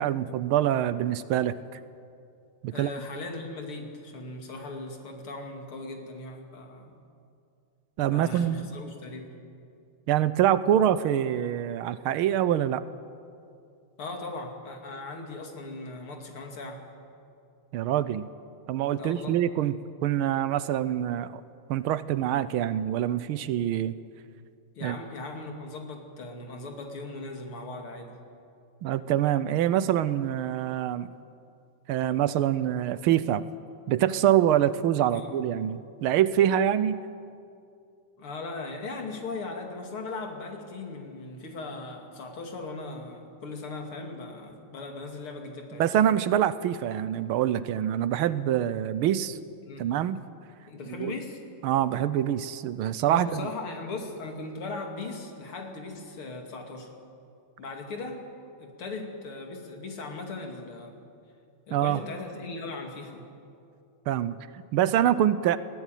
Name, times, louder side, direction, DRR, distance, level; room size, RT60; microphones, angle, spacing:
voice 1, 0.0-1.8 2.6-2.9 8.0-8.7 10.1-12.8 17.7-18.3 18.7-21.4 21.7-24.0 24.8-25.0 28.8-31.1 31.9-33.4 33.9-37.0 45.8-49.4 49.8-50.2 50.9-51.1 51.6-53.5 61.7-62.0 64.1-65.6, right 11 dB, 75° right, 15 dB, 1.5 m, -25 dB
voice 2, 2.7-7.0 8.1-9.4 14.0-16.9 19.0-19.4 24.8-28.2 35.1-35.4 38.2-45.8 49.7-49.9 50.7-51.4 53.1-56.9 57.6-58.3 58.6-61.0 61.7-63.2, left 3 dB, 75° left, 3 dB, 3.4 m, -38 dB
21.5 x 17.0 x 9.2 m, 2.5 s
omnidirectional pair, 2.4 m